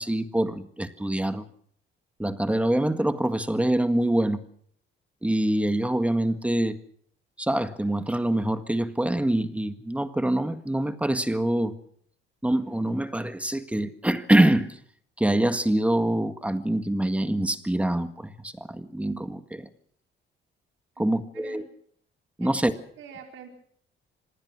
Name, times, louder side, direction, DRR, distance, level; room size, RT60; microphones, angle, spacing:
voice 1, 0.0-1.4 2.2-4.4 5.2-6.8 7.4-11.7 12.4-14.7 15.2-19.7 21.0-21.6 22.4-22.7, right 1 dB, 5° right, 9 dB, 1.7 m, -25 dB
voice 2, 20.9-21.6 22.4-23.5, right 7 dB, 85° right, 3 dB, 4.6 m, -45 dB
26.0 x 19.5 x 6.2 m, 0.64 s
cardioid pair, 115°, 20 cm